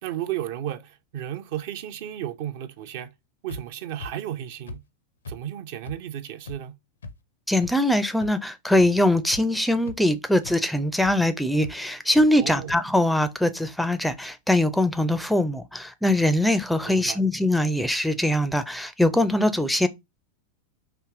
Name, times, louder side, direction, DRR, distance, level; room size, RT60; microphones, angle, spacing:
voice 1, 0.0-3.1 3.4-4.8 5.3-6.7 12.4-12.7 16.8-17.2, right 11 dB, 50° right, 0.6 m, -33 dB
Beating Chest Whilst Wearing Suit, 3.5-3.6 4.0-4.1 4.7-4.8 5.2-5.4 5.9-6.0 6.5-6.6 7.0-7.1 7.6-7.7 8.2-8.3 8.8-8.9 9.3-9.6 9.9-10.0 10.4-10.5 11.0-11.1 11.6-11.7 12.2-12.3 12.7-12.8, left 3 dB, 70° left, 0.6 m, -38 dB
voice 2, 7.5-19.9, left 1 dB, ahead, 0.4 m, -22 dB
4.5 x 2.8 x 3.7 m
figure-of-eight pair, 90°, 0 cm